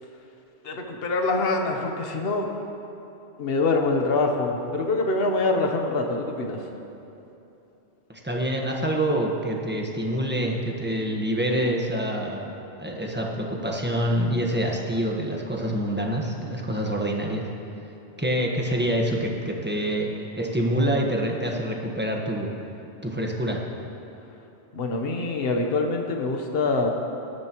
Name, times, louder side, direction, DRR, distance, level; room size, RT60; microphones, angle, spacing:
voice 1, 0.6-2.5 3.4-6.6 24.7-26.9, left 3 dB, 60° left, 2 dB, 1.2 m, -25 dB
voice 2, 8.1-12.5 12.8-17.5 18.2-22.5 23.0-23.6, right 1 dB, 10° right, -1 dB, 1.2 m, -26 dB
19.0 x 13.0 x 3.0 m, 2.9 s
omnidirectional pair, 1.2 m